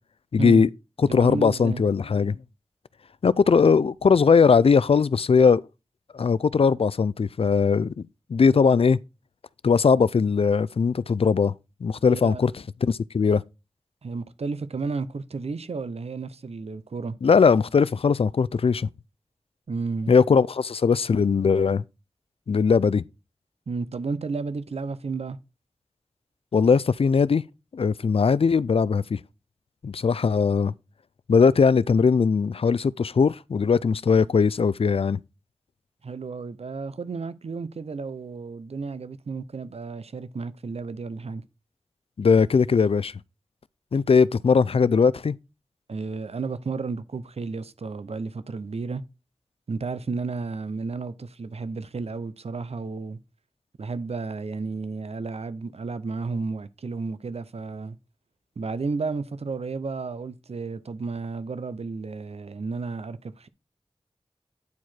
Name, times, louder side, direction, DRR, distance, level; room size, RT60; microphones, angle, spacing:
voice 1, 0.3-0.7 1.0-2.4 3.2-5.6 6.1-7.9 8.3-9.0 9.6-11.5 11.8-12.5 12.8-13.4 17.2-18.9 20.1-21.8 22.5-23.0 26.5-27.4 27.7-29.2 29.8-30.7 31.3-35.2 42.2-43.1 43.9-45.3, left 5 dB, 65° left, 0.4 m, -20 dB
voice 2, 1.1-1.8 8.6-8.7 12.1-12.4 14.0-17.2 19.7-20.1 23.7-25.4 36.0-41.4 45.9-49.0 49.7-53.2 53.8-58.0 58.6-63.5, right 4 dB, 80° right, 0.7 m, -32 dB
9.5 x 4.7 x 4.3 m
wide cardioid pair, 50°, 10 cm